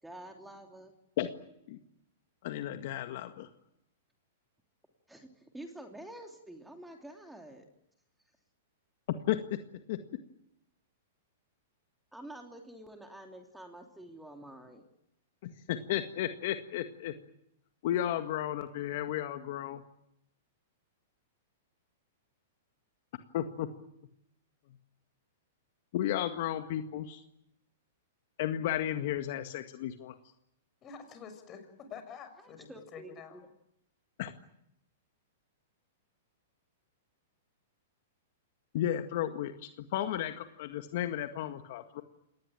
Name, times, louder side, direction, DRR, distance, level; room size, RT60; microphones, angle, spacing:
voice 1, 0.0-0.9 5.1-7.7 12.1-14.9 32.4-33.5, right 1 dB, 5° right, 4 dB, 3.1 m, -48 dB
voice 2, 2.4-3.5 9.3-9.4 9.9-10.0 15.4-17.1 17.8-19.8 23.3-23.7 25.9-27.2 28.4-30.1 34.2-34.3 38.7-42.0, left 12 dB, 55° left, 7 dB, 1.8 m, -33 dB
voice 3, 30.8-33.4, left 6 dB, 30° left, 8 dB, 6.4 m, -48 dB
27.0 x 19.5 x 9.1 m, 0.79 s
hypercardioid pair, 130°, 0 cm